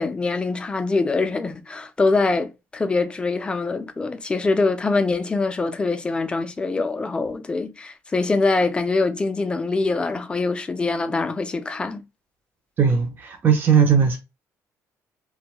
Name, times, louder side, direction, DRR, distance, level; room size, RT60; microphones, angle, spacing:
voice 1, 0.0-12.0, left 3 dB, 15° left, 0.4 m, -24 dB
voice 2, 12.8-14.2, right 7 dB, 30° right, 0.5 m, -18 dB
2.6 x 2.2 x 2.9 m
cardioid pair, 140°, 6 cm